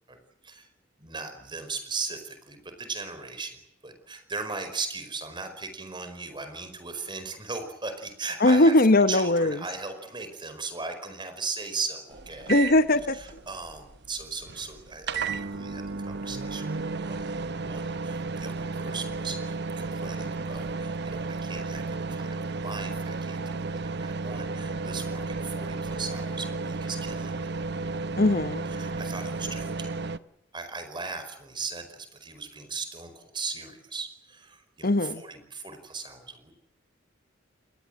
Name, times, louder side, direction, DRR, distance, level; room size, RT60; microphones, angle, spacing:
voice 1, 1.0-3.6 3.8-8.7 9.1-12.7 13.1-27.4 28.7-29.9 30.5-36.5, right 4 dB, 25° right, 8 dB, 4.9 m, -38 dB
voice 2, 8.4-9.6 12.5-13.2 28.2-28.6 34.8-35.2, left 2 dB, 50° left, 12 dB, 1.0 m, -20 dB
sound 1, 12.1-30.2, right 3 dB, 60° right, 1.1 m, -33 dB
28.5 x 21.0 x 7.8 m, 0.77 s
head